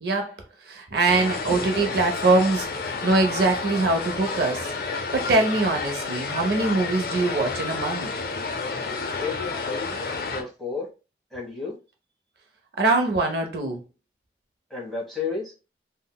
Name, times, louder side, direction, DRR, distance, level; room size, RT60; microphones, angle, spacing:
voice 1, 0.0-4.7 5.1-8.1 12.8-13.8, right 3 dB, 65° right, 0.5 m, -23 dB
sound 1, 1.1-10.4, left 4 dB, 55° left, 0.5 m, -30 dB
voice 2, 9.1-10.0 10.3-10.9 11.3-11.8 14.7-15.5, left 4 dB, ahead, 1.2 m, -32 dB
3.7 x 2.1 x 2.2 m
head